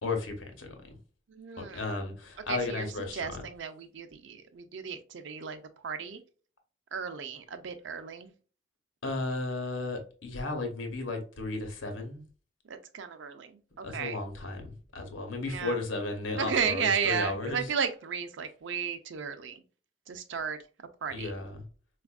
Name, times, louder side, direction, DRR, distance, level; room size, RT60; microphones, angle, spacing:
voice 1, 0.0-1.0 1.7-3.4 9.0-12.2 13.8-17.6 21.1-21.6, left 3 dB, 85° left, 0.9 m, -34 dB
voice 2, 1.3-1.9 2.5-6.2 6.9-8.3 12.7-14.2 15.4-15.8 16.4-19.6 20.1-20.6 21.0-21.3, right 6 dB, 75° right, 0.5 m, -34 dB
4.1 x 2.4 x 2.3 m
head